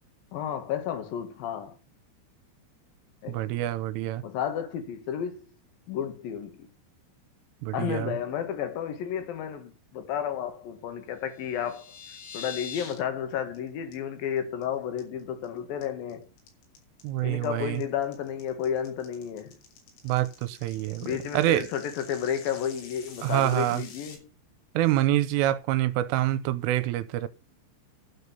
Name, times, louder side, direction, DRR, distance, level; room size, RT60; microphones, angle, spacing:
voice 1, 0.3-1.8 3.2-3.6 4.2-5.5 5.9-6.7 7.7-12.0 12.3-16.3 17.2-19.6 21.0-24.3, left 9 dB, 60° left, 2.8 m, -32 dB
voice 2, 3.3-4.2 7.6-8.1 17.0-17.8 20.0-21.1 21.3-21.7 23.2-23.8 24.8-27.3, right 14 dB, 80° right, 3.3 m, -26 dB
sound 1, 11.3-13.0 13.3-13.6 13.9-14.0 14.4-14.6 15.0-15.5 15.8-24.2, left 6 dB, 80° left, 5.9 m, -45 dB
12.0 x 6.5 x 6.8 m
omnidirectional pair, 5.8 m